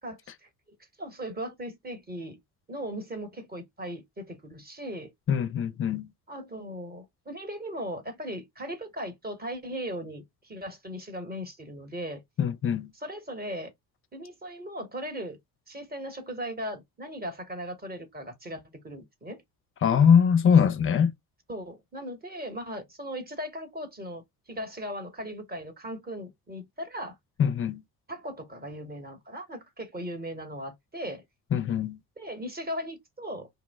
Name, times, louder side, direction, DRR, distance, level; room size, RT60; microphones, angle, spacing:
voice 1, 0.0-0.5 1.0-2.4 2.7-5.1 6.3-12.2 13.0-13.7 14.1-15.4 15.7-19.4 21.5-24.2 24.5-27.2 28.1-31.2 32.2-33.5, equal, 20° right, 1.0 m, -38 dB
voice 2, 5.3-6.1 12.4-12.9 19.8-21.1 27.4-27.8 31.5-32.0, left 7 dB, 30° left, 0.5 m, -22 dB
2.7 x 2.0 x 3.4 m
figure-of-eight pair, 50°, 47 cm